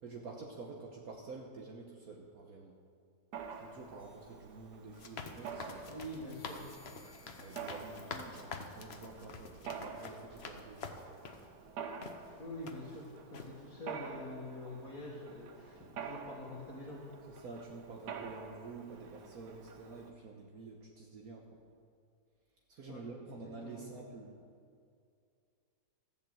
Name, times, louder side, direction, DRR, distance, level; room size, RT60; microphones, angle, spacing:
voice 1, 0.0-2.8 3.5-6.6 7.4-10.8 17.3-21.6 22.7-24.3, right 3 dB, 60° right, 0 dB, 1.5 m, -49 dB
Mechanisms, 3.3-20.1, right 6 dB, 90° right, 1.5 m, -48 dB
sound 1, 4.0-4.9 5.4-9.1, left 4 dB, 90° left, 2.0 m, -63 dB
sound 2, 4.9-11.5 12.0-12.2 12.7-13.0 13.3-13.5, left 4 dB, 45° left, 1.0 m, -47 dB
voice 2, 5.9-6.6 12.4-17.0 22.9-23.8, left 1 dB, 60° left, -6 dB, 2.3 m, -46 dB
14.0 x 7.4 x 7.8 m, 2.4 s
omnidirectional pair, 1.8 m